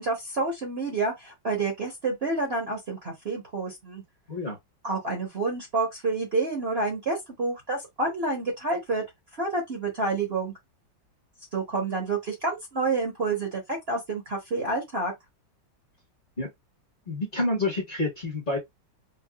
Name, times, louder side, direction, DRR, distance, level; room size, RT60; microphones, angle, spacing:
voice 1, 0.0-4.0 4.8-9.0 9.4-10.5 11.5-15.1, right 3 dB, 40° right, 1.1 m, -29 dB
voice 2, 17.1-18.6, left 2 dB, 30° left, 1.2 m, -28 dB
4.7 x 2.4 x 2.3 m
omnidirectional pair, 2.0 m